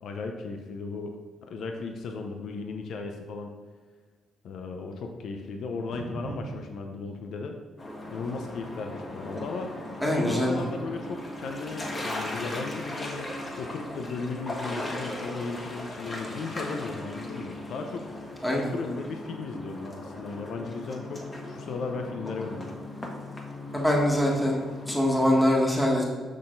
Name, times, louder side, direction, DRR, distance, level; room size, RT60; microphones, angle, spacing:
voice 1, 0.0-3.6 4.4-7.6 8.1-9.8 10.1-18.1 18.5-22.7, left 4 dB, 70° left, 4 dB, 0.7 m, -36 dB
sound 1, 7.8-25.5, left 1 dB, 30° left, 1.4 m, -38 dB
voice 2, 10.0-10.6 18.4-18.7 23.7-24.6 24.9-26.0, left 1 dB, 5° left, -3 dB, 1.6 m, -23 dB
6.4 x 6.0 x 3.9 m, 1.5 s
cardioid pair, 90°, 0 cm